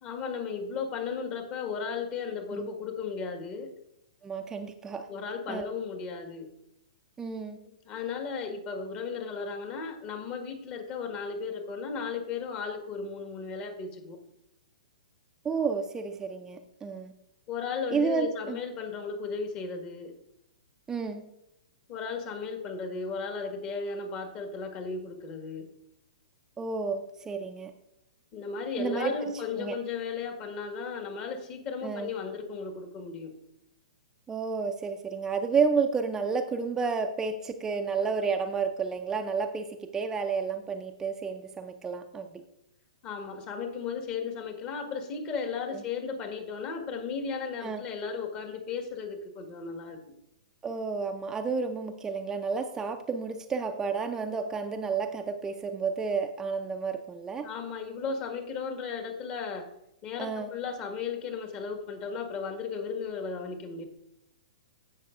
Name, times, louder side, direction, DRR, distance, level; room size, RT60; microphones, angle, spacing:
voice 1, 0.0-3.7 5.1-6.5 7.7-14.2 17.5-20.1 21.9-25.7 28.3-33.3 43.0-50.0 57.4-59.7 60.0-63.8, left 5 dB, 35° left, 5 dB, 1.6 m, -35 dB
voice 2, 4.2-5.1 5.5-5.7 7.2-7.6 15.4-17.1 17.9-18.6 20.9-21.2 26.6-27.7 28.8-29.1 29.6-29.8 31.8-32.1 34.3-42.4 45.7-45.8 47.6-47.8 50.6-57.5 60.2-60.5, right 5 dB, 15° right, 5 dB, 0.6 m, -31 dB
16.0 x 6.3 x 2.5 m, 0.83 s
figure-of-eight pair, 115°, 3 cm